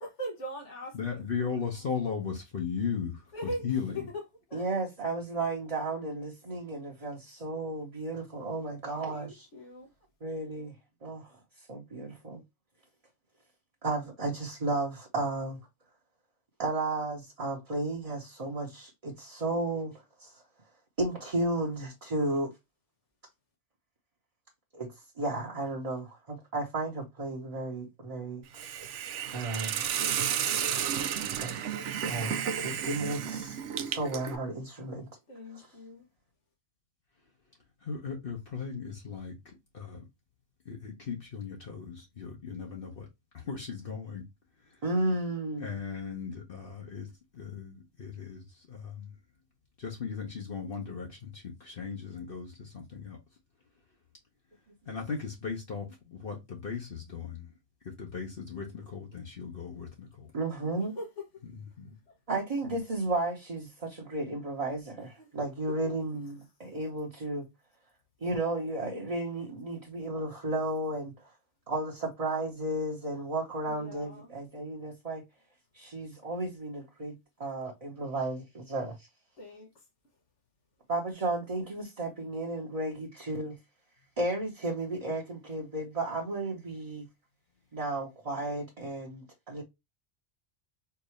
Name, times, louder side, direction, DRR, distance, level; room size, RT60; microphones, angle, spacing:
voice 1, 0.0-1.2 3.3-3.6 4.5-4.6 9.1-9.9 35.3-36.0 61.0-61.1 73.7-74.3 79.4-79.7, right 1 dB, 90° left, 1.7 m, -40 dB
voice 2, 0.9-4.1 37.8-40.0 40.6-43.1 43.3-44.2 44.6-44.8 45.6-49.1 49.8-53.2 54.9-57.5 57.8-60.3 61.4-62.0, left 6 dB, 55° left, 1.1 m, -37 dB
voice 3, 4.5-9.5 10.2-10.7 11.0-11.4 11.7-12.4 13.8-15.6 16.6-20.4 21.0-22.5 24.7-28.8 29.3-29.9 31.4-31.6 32.0-35.1 35.5-35.7 44.8-45.8 60.3-60.9 62.3-67.4 68.2-71.3 71.7-75.2 75.7-79.1 80.9-83.6 84.2-87.1 87.7-89.6, right 2 dB, 35° right, 1.0 m, -33 dB
Hiss, 28.5-34.4, right 9 dB, 85° right, 0.9 m, -32 dB
4.6 x 2.7 x 3.1 m
omnidirectional pair, 1.2 m